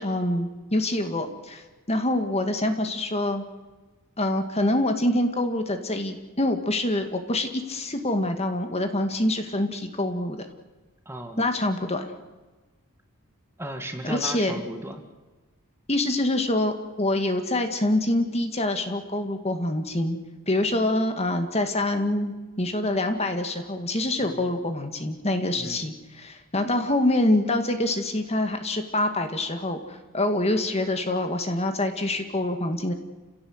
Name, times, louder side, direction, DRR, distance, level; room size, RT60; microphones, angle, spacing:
voice 1, 0.0-3.4 4.2-10.5 11.4-12.1 14.0-14.5 15.9-20.2 20.5-32.9, left 1 dB, 30° left, 7 dB, 2.0 m, -25 dB
voice 2, 11.1-11.4 13.6-15.0 24.2-24.5 25.6-25.9, right 1 dB, 10° right, 5 dB, 2.0 m, -36 dB
29.5 x 17.0 x 8.1 m, 1.3 s
head